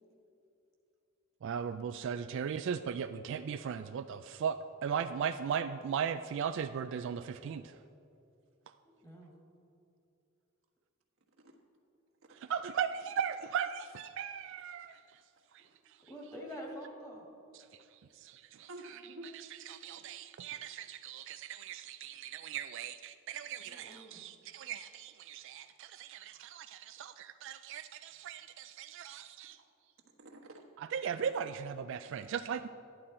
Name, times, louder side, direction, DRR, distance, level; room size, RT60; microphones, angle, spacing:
voice 1, 1.4-7.8 12.5-15.0 15.5-15.6 17.5-18.7 19.7-29.6 30.9-32.7, right 7 dB, 65° right, 10 dB, 0.3 m, -38 dB
voice 2, 9.0-9.3 16.1-17.3 23.6-24.2, equal, 20° left, -2 dB, 2.2 m, -46 dB
voice 3, 18.7-19.3 20.0-20.1 23.9-24.0 26.2-26.5 29.0-29.1 29.6-30.6 31.1-31.2 32.0-32.3, right 1 dB, 85° right, 0 dB, 1.4 m, -52 dB
11.5 x 11.0 x 4.3 m, 2.6 s
head